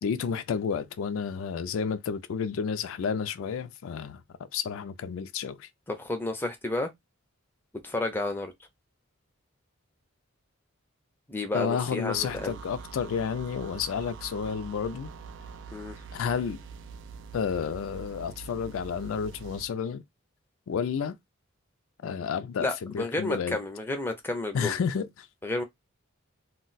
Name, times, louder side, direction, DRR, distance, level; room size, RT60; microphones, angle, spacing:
voice 1, 0.0-4.2 4.5-5.7 11.5-15.1 16.1-16.6 17.3-20.0 20.7-21.2 22.0-23.6 24.5-25.3, left 6 dB, 70° left, 0.3 m, -31 dB
voice 2, 5.9-6.9 7.8-8.5 11.3-12.6 15.7-16.0 22.6-24.8 25.4-25.6, left 2 dB, 10° left, 0.5 m, -31 dB
sound 1, 12.1-19.7, right 5 dB, 60° right, 0.3 m, -44 dB
2.3 x 2.2 x 3.9 m
head